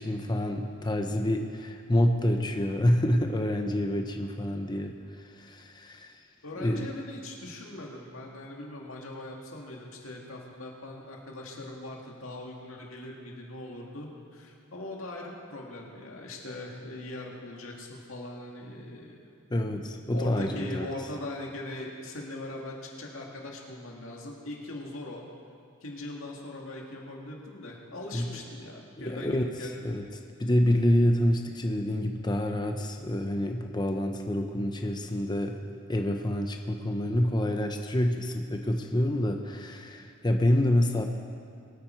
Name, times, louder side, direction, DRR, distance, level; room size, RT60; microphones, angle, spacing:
voice 1, 0.0-6.1 6.6-6.8 19.5-20.9 28.1-28.4 29.0-29.5 29.8-30.0 30.4-35.6 35.9-41.0, left 1 dB, 20° left, 4 dB, 0.7 m, -27 dB
voice 2, 6.4-19.3 20.1-25.2 25.8-30.0, left 1 dB, 80° left, -1 dB, 2.0 m, -40 dB
22.5 x 9.3 x 4.5 m, 2.3 s
head